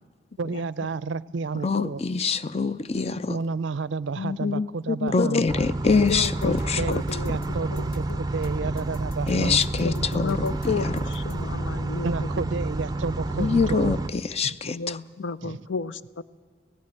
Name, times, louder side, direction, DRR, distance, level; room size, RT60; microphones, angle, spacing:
voice 1, 0.4-2.0 3.3-5.4 6.8-9.6 12.0-13.9 14.4-14.6 15.4-15.6, right 4 dB, 75° right, 0.5 m, -31 dB
voice 2, 1.6-3.4 5.1-6.8 9.3-10.6 13.4-15.0, left 4 dB, 30° left, 0.5 m, -25 dB
voice 3, 4.2-5.5 5.8-7.3 7.6-8.2 9.8-12.1 12.4-12.5 14.6-16.2, left 4 dB, 80° left, 0.6 m, -30 dB
sound 1, 5.5-14.1, right 2 dB, 20° right, 0.5 m, -29 dB
sound 2, 6.1-11.5, left 1 dB, 50° left, 1.5 m, -45 dB
16.5 x 16.0 x 9.9 m
head